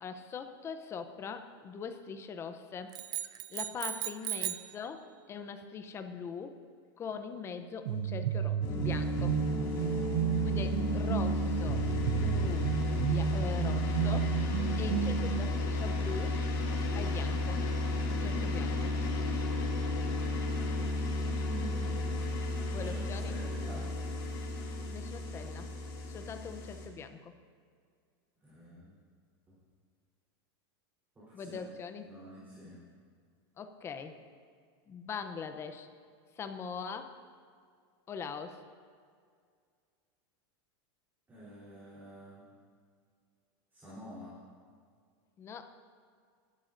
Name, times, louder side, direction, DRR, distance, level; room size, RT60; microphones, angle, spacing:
voice 1, 0.0-2.9 3.5-6.6 7.0-9.4 10.4-11.8 12.1-14.3 14.8-16.4 16.9-17.6 18.1-18.9 22.7-23.4 24.9-25.7 26.1-27.3 31.3-32.1 33.6-34.2 34.9-35.9 36.4-37.1 38.1-38.6 45.4-45.8, left 6 dB, 20° left, 8 dB, 0.6 m, -42 dB
sound 1, 2.9-4.8, right 13 dB, 30° right, 0.4 m, -37 dB
sound 2, 7.8-15.5, right 11 dB, 85° right, 0.5 m, -32 dB
sound 3, 8.6-26.9, left 2 dB, 55° left, 2.3 m, -33 dB
voice 2, 21.4-22.0 22.7-23.0 23.3-23.8 28.4-28.9 31.2-31.6 32.1-32.8 41.3-42.4 43.7-44.3, right 1 dB, 15° right, -10 dB, 3.5 m, -48 dB
18.5 x 11.5 x 2.6 m, 2.1 s
supercardioid pair, 155°, 13 cm